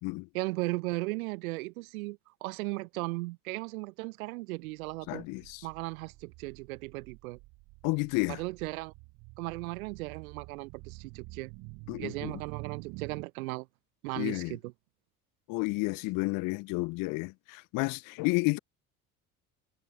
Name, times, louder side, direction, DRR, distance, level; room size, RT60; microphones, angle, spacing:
voice 1, 0.3-5.3 5.6-7.4 8.3-8.9 9.4-11.5 12.0-13.7 14.0-14.7, right 22 dB, 75° right, 0.6 m, -36 dB
sound 1, 4.8-13.2, right 25 dB, 60° right, 0.9 m, -48 dB
voice 2, 5.1-5.7 7.8-8.4 11.9-12.4 14.2-14.6 15.5-18.6, left 26 dB, 50° left, 0.5 m, -31 dB
hypercardioid pair, 60°, 43 cm